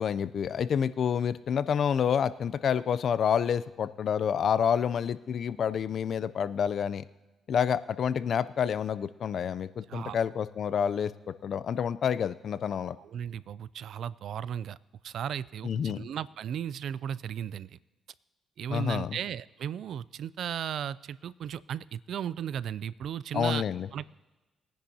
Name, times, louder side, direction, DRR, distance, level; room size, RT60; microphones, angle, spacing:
voice 1, 0.0-7.0 7.5-13.0 15.6-16.0 18.7-19.2 23.3-23.9, left 8 dB, 60° left, 16 dB, 0.5 m, -28 dB
voice 2, 13.0-14.8 15.0-17.8 18.6-23.6 23.9-24.1, right 9 dB, 70° right, 19 dB, 0.3 m, -35 dB
21.0 x 10.0 x 2.8 m, 1.1 s
cardioid pair, 90°, 0 cm